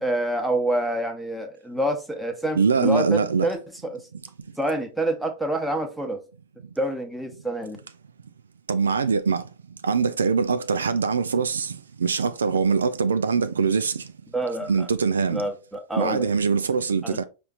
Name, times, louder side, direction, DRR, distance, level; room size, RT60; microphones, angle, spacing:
voice 1, 0.0-4.0 4.6-6.2 6.8-7.8 14.3-14.9 15.3-16.3 17.0-17.2, right 1 dB, 5° right, 1.0 m, -27 dB
voice 2, 2.5-3.5 8.7-9.4 9.8-14.0 14.7-15.4 16.0-17.2, right 5 dB, 70° right, 0.3 m, -23 dB
5.4 x 2.5 x 3.9 m
figure-of-eight pair, 90°, 0 cm